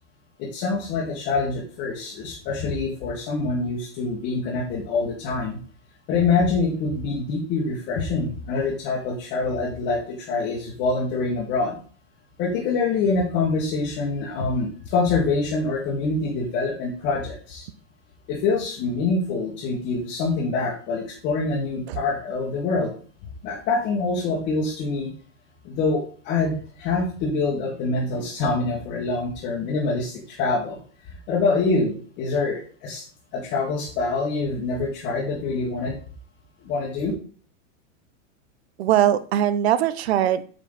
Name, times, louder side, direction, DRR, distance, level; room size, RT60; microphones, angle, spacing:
voice 1, 0.4-5.6 6.1-11.8 12.4-17.7 18.3-22.9 23.4-25.1 25.6-30.8 31.1-33.0 33.3-35.9 36.6-37.1, left 3 dB, 30° left, -4 dB, 1.8 m, -25 dB
voice 2, 38.8-40.4, right 11 dB, 55° right, 14 dB, 0.7 m, -21 dB
9.0 x 5.9 x 4.1 m, 0.42 s
supercardioid pair, 175°, 39 cm